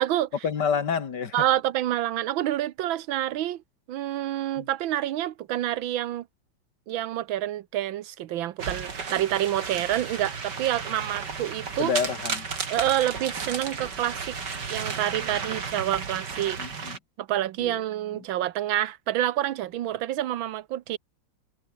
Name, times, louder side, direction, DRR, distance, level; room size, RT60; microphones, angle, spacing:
voice 1, 0.4-1.4 4.6-4.7 11.8-12.5 16.6-17.0 17.6-17.8, left 6 dB, 60° left, 2.4 m, -28 dB
voice 2, 1.3-3.6 3.9-6.2 6.9-11.9 12.7-14.4 14.7-16.6 17.2-21.0, right 13 dB, 85° right, 1.6 m, -28 dB
sound 1, 8.6-17.0, right 5 dB, 60° right, 3.3 m, -33 dB
omnidirectional pair, 2.1 m